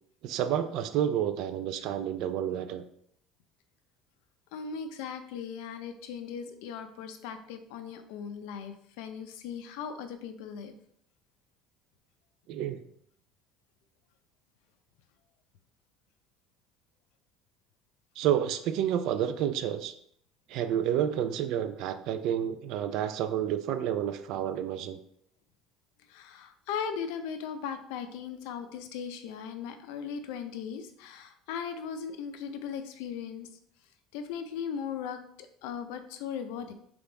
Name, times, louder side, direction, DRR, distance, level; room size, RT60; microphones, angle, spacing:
voice 1, 0.2-2.8 12.5-12.8 18.2-19.9 20.5-25.0, right 10 dB, 60° right, 10 dB, 0.4 m, -30 dB
voice 2, 4.5-10.7 26.1-33.5 34.1-36.7, left 7 dB, 85° left, 9 dB, 0.5 m, -38 dB
3.5 x 3.4 x 3.9 m, 0.68 s
cardioid pair, 155°, 0 cm